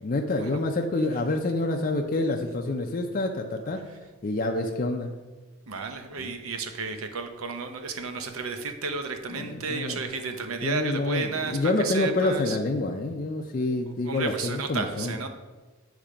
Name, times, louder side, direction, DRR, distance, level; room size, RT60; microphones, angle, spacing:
voice 1, 0.0-3.8 4.2-5.1 6.2-6.3 9.3-10.0 10.6-15.1, left 2 dB, 40° left, 2 dB, 0.4 m, -27 dB
voice 2, 5.7-12.6 14.0-15.3, right 4 dB, 80° right, 6 dB, 0.7 m, -32 dB
8.4 x 3.3 x 4.9 m, 1.3 s
head